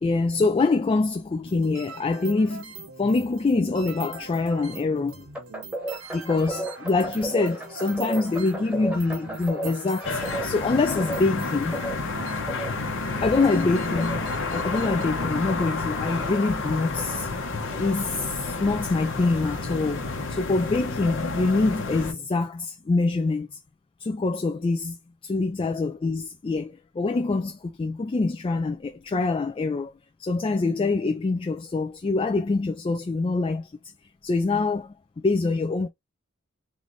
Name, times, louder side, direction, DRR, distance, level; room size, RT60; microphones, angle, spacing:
voice 1, 0.0-5.3 6.1-11.8 13.2-14.2 14.5-17.3 17.8-20.0 20.3-23.5 24.0-25.0 25.2-29.9 30.2-33.7 34.2-35.9, left 3 dB, 25° left, 0.3 m, -25 dB
sound 1, 1.4-15.1, right 4 dB, 65° right, 0.8 m, -43 dB
sound 2, 5.3-20.2, right 1 dB, 5° right, 1.0 m, -37 dB
sound 3, 10.0-22.1, left 3 dB, 65° left, 1.0 m, -30 dB
3.2 x 3.1 x 3.8 m
head